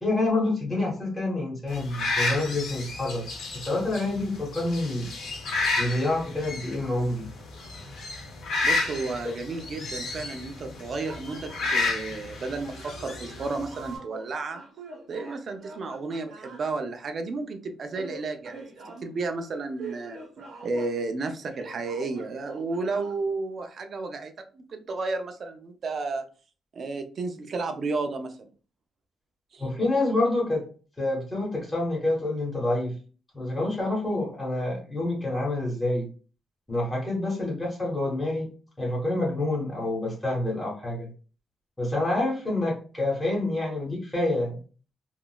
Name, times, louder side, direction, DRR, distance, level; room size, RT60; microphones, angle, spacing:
voice 1, 0.0-3.2 3.5-5.1 5.8-7.3 9.2-9.3 29.6-30.7 31.0-32.9 33.3-36.1 36.7-38.5 38.8-41.1 41.8-44.5, left 2 dB, 10° left, -4 dB, 1.1 m, -27 dB
sound 1, 1.7-14.0, left 3 dB, 90° left, 1.0 m, -32 dB
voice 2, 8.6-14.6 15.1-18.6 19.0-20.2 20.6-26.2 26.7-28.4 29.5-29.6, right 3 dB, 40° right, 6 dB, 0.4 m, -32 dB
sound 2, 11.0-11.8 12.5-16.7 17.9-19.1 19.8-23.2, right 4 dB, 60° right, 1.0 m, -44 dB
3.6 x 2.4 x 2.2 m, 0.37 s
wide cardioid pair, 170°, 0 cm